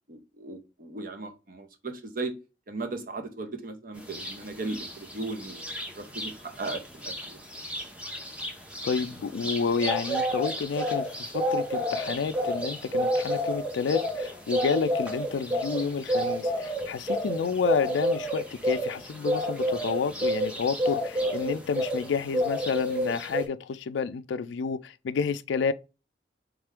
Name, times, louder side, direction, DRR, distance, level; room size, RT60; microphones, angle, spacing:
voice 1, 0.1-2.3 2.7-5.6 6.0-7.4, right 3 dB, 50° right, 0.7 m, -37 dB
sound 1, 4.1-4.3 4.7-6.3 6.6-6.8 7.0-22.1 22.3-23.4, equal, 5° right, 0.7 m, -29 dB
voice 2, 8.8-25.7, left 5 dB, 85° left, 0.4 m, -30 dB
3.6 x 3.3 x 3.5 m
head